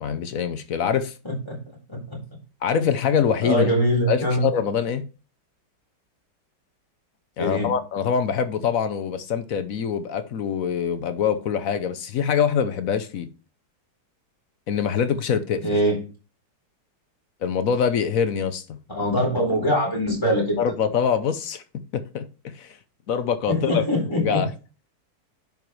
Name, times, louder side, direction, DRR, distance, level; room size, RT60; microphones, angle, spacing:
voice 1, 0.0-1.1 2.6-3.7 4.1-5.0 7.4-13.3 14.7-15.6 17.4-18.8 20.6-21.6 21.9-22.2 22.5-22.8 23.1-24.5, left 7 dB, 60° left, 1.0 m, -24 dB
voice 2, 3.4-4.4 7.4-7.7 15.6-16.0 18.9-20.6 23.5-24.4, equal, 15° left, 4.4 m, -22 dB
10.5 x 5.3 x 3.1 m
omnidirectional pair, 1.9 m